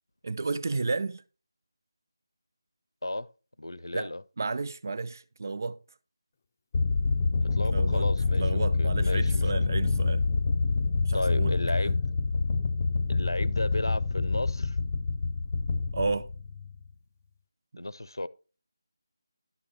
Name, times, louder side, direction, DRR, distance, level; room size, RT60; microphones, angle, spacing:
voice 1, 0.2-1.2 3.9-4.1 4.4-5.8 7.7-8.1 8.4-10.2 11.1-11.5 15.9-16.3 17.7-17.8, right 3 dB, 45° right, 0.6 m, -32 dB
voice 2, 3.6-4.2 7.4-9.5 11.1-12.0 13.1-14.8 17.8-18.3, left 1 dB, 75° left, 0.7 m, -34 dB
sound 1, 6.7-16.8, left 3 dB, 30° left, 0.6 m, -27 dB
12.0 x 6.1 x 4.6 m
figure-of-eight pair, 160°, 2 cm